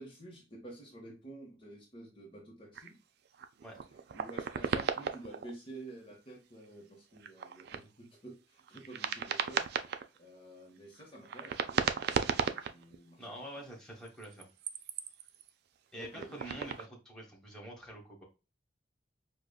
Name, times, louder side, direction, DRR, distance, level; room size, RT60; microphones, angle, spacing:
voice 1, 0.0-3.0 3.8-9.7 10.2-13.3 16.0-16.7, right 1 dB, 30° left, -2 dB, 0.9 m, -50 dB
sound 1, 2.7-2.9 3.3-5.5 6.1-6.2 7.1-7.8 8.6-10.2 11.0-13.0 14.1-15.5 16.0-16.9, right 6 dB, 60° right, 0.4 m, -35 dB
voice 2, 13.2-14.5 15.9-18.2, right 1 dB, 5° left, -2 dB, 1.2 m, -46 dB
4.9 x 2.3 x 2.3 m, 0.30 s
head